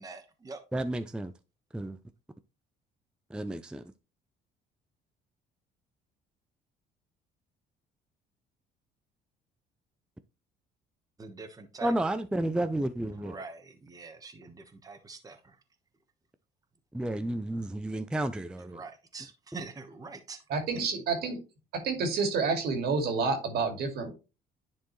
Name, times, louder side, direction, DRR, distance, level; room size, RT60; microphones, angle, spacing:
voice 1, 0.0-0.6 11.2-11.9 13.0-15.6 18.7-20.4, right 4 dB, 20° right, 1.1 m, -44 dB
voice 2, 0.7-1.3 1.7-2.0 3.3-3.9 11.8-13.4 16.9-18.8, right 1 dB, 5° right, 0.4 m, -31 dB
voice 3, 20.5-21.4 21.8-24.1, right 4 dB, 70° right, 2.2 m, -29 dB
10.5 x 4.5 x 3.1 m
cardioid pair, 110°, 17 cm